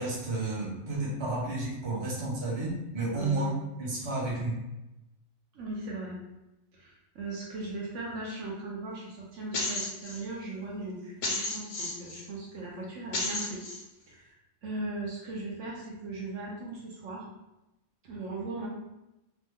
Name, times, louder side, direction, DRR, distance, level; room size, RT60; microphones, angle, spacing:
voice 1, 0.0-4.6, right 2 dB, 25° right, -6 dB, 0.6 m, -32 dB
voice 2, 3.1-3.6 5.5-6.2 6.7-13.6 14.1-14.4 14.6-17.3 18.0-18.7, right 2 dB, 65° right, -3 dB, 1.0 m, -38 dB
sound 1, 9.5-10.2 11.2-12.2 13.1-13.8, left 2 dB, 65° left, 0.9 m, -32 dB
3.1 x 2.1 x 3.4 m, 0.95 s
omnidirectional pair, 1.5 m